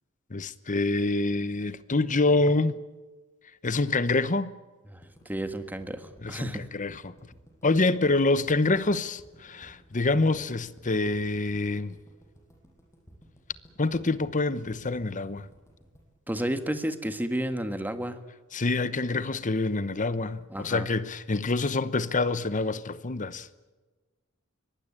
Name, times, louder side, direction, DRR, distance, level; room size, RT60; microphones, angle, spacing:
voice 1, 0.3-2.8 3.6-4.5 6.2-7.1 7.6-11.9 13.8-15.5 18.5-23.5, left 3 dB, 35° left, 0.9 m, -26 dB
voice 2, 4.9-6.6 16.3-18.2 20.5-20.9, right 1 dB, 10° right, 1.5 m, -32 dB
sound 1, 5.0-17.2, equal, 15° left, 7.1 m, -55 dB
23.5 x 19.0 x 8.9 m
head